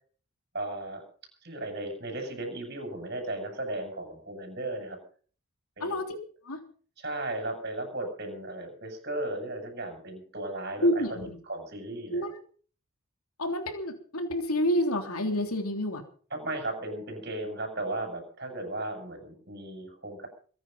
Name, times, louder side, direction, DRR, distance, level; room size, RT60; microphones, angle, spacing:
voice 1, 0.5-1.0 1.4-5.0 5.8-6.0 7.0-12.3 16.3-20.3, right 1 dB, 45° right, 3 dB, 6.8 m, -36 dB
voice 2, 5.8-6.2 6.4-6.6 10.8-11.3 12.1-12.4 13.4-16.0, equal, 85° left, 5 dB, 3.4 m, -28 dB
23.0 x 10.0 x 5.5 m, 0.43 s
head